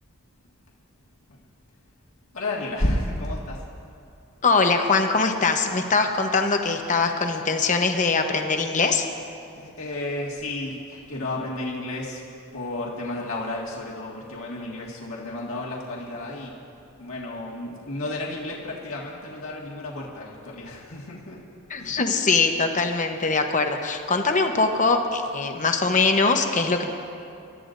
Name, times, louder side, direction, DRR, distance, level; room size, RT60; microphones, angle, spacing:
voice 1, 2.3-3.6 9.5-12.2 12.5-16.6 17.0-21.4 21.8-22.0, left 1 dB, 70° left, -4 dB, 1.9 m, -32 dB
voice 2, 4.4-9.1 21.7-26.8, left 4 dB, 35° left, 5 dB, 1.0 m, -22 dB
26.5 x 13.0 x 2.6 m, 2.6 s
head